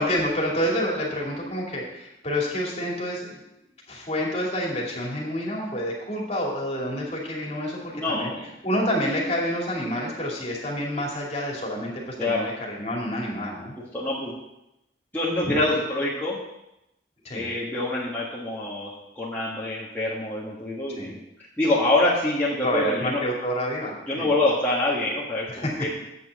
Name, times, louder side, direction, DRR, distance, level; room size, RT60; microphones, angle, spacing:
voice 1, 0.0-3.3 3.9-7.8 8.1-8.3 8.6-13.7 15.5-15.6 17.2-17.4 21.0-21.1 22.6-24.3 25.5-25.6, equal, 35° left, -3 dB, 2.5 m, -28 dB
voice 2, 7.9-8.5 12.2-12.5 13.8-14.4 15.1-16.4 17.3-21.2 21.6-23.2 24.1-25.9, left 2 dB, 10° left, -8 dB, 1.6 m, -26 dB
8.2 x 6.0 x 7.4 m, 0.88 s
head